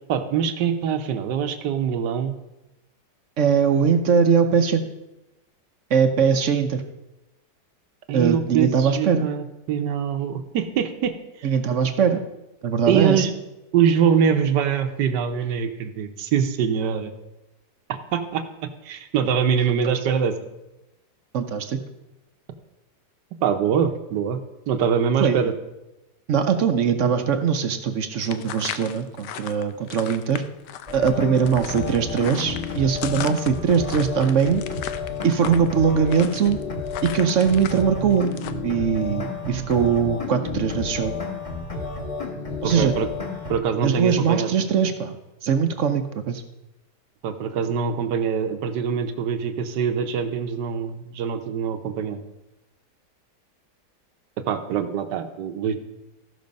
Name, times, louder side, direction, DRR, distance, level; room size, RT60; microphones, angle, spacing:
voice 1, 0.1-2.4 8.1-11.5 12.9-13.3 13.7-17.1 17.9-18.4 18.8-20.3 23.4-24.4 24.7-25.5 42.6-43.1 43.5-44.5 47.2-52.2 54.5-55.8, right 7 dB, 80° right, 7 dB, 1.5 m, -23 dB
voice 2, 3.4-4.8 5.9-6.8 8.1-9.3 11.4-12.2 12.6-13.3 21.3-21.8 25.2-25.5 26.3-30.4 30.9-34.6 35.2-36.6 37.0-38.3 38.6-41.1 42.6-42.9 43.8-45.2 45.4-46.4, right 6 dB, 60° right, 8 dB, 0.9 m, -21 dB
sound 1, 28.2-37.8 38.1-38.5, left 10 dB, 80° left, 1.2 m, -37 dB
sound 2, 30.9-43.6, left 3 dB, 20° left, 1.3 m, -31 dB
14.0 x 6.0 x 5.2 m, 0.97 s
omnidirectional pair, 1.8 m